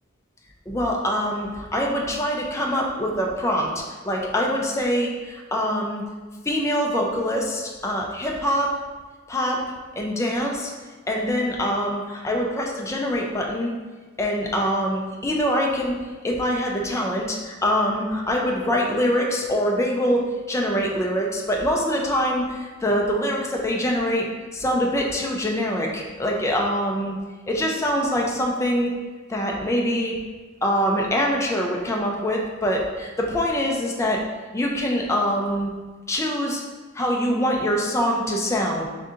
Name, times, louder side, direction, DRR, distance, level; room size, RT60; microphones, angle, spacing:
voice 1, 0.7-6.0 6.4-8.7 9.3-9.6 10.0-10.7 11.1-13.7 14.2-16.0 16.2-24.2 24.5-27.2 27.5-28.9 29.3-30.2 30.6-34.2 34.5-35.7 36.1-36.6 36.9-38.9, equal, 15° left, -1 dB, 0.4 m, -24 dB
3.7 x 2.7 x 3.6 m, 1.3 s
head